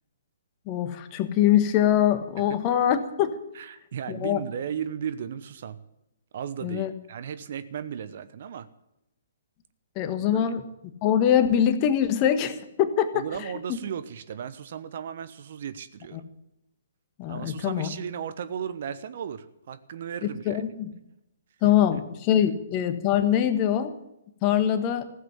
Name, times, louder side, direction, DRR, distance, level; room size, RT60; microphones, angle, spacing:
voice 1, 0.7-3.4 4.1-4.4 6.6-6.9 9.9-10.6 11.0-13.2 16.1-16.2 17.2-17.9 20.4-20.9 21.6-23.9 24.4-25.0, left 10 dB, 30° left, 10 dB, 1.3 m, -23 dB
voice 2, 3.5-5.8 6.3-8.7 10.3-10.5 13.1-16.2 17.3-20.6 21.6-22.0, right 8 dB, 50° right, 13 dB, 1.0 m, -35 dB
15.5 x 8.0 x 9.7 m, 0.85 s
figure-of-eight pair, 125°, 0 cm